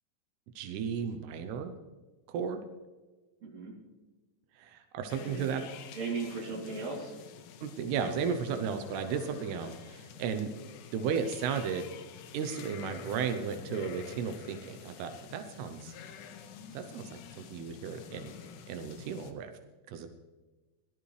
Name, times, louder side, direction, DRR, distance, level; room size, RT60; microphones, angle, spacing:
voice 1, 0.6-1.7 2.3-2.7 4.6-5.6 7.6-10.5 10.9-11.9 12.3-15.9 16.7-18.3 18.7-19.5 19.9-20.1, right 6 dB, 85° right, 7 dB, 2.3 m, -34 dB
voice 2, 3.4-3.7 5.2-5.6 5.9-7.1, right 4 dB, 35° right, -4 dB, 4.0 m, -37 dB
sound 1, 5.1-19.3, left 7 dB, 80° left, 3.5 m, -48 dB
19.5 x 12.0 x 3.3 m, 1.2 s
omnidirectional pair, 5.6 m